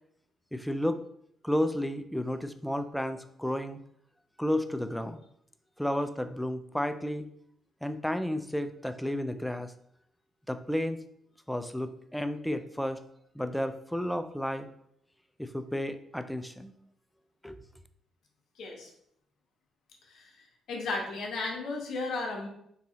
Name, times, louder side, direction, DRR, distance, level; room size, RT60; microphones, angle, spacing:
voice 1, 0.5-1.0 1.4-3.8 4.4-5.2 5.8-7.3 7.8-9.7 10.5-11.0 11.5-13.0 13.4-14.7 15.4-16.7 17.4-17.6, left 1 dB, 5° left, 9 dB, 0.3 m, -32 dB
voice 2, 18.6-18.9 20.1-20.3 20.7-22.5, left 3 dB, 70° left, 0 dB, 0.9 m, -34 dB
3.9 x 2.8 x 2.8 m, 0.71 s
cardioid pair, 90°, 0 cm